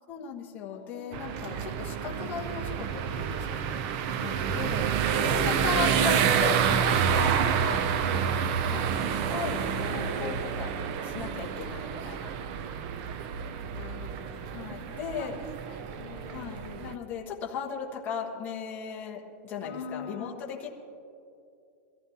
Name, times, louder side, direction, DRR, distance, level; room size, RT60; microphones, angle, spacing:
voice 1, 0.1-3.8 4.2-4.9 5.1-7.8 8.6-10.7 11.1-12.3 14.5-15.4 16.3-20.7, left 6 dB, 20° left, -3 dB, 1.4 m, -37 dB
voice 2, 0.7-1.8 5.1-5.7 7.1-7.8 9.7-10.8 13.3-14.8 15.1-16.9 19.6-20.6, left 5 dB, 50° left, 2 dB, 1.4 m, -45 dB
sound 1, 1.1-16.9, right 8 dB, 35° right, 0.5 m, -28 dB
22.5 x 15.5 x 2.9 m, 2.6 s
supercardioid pair, 170°, 8 cm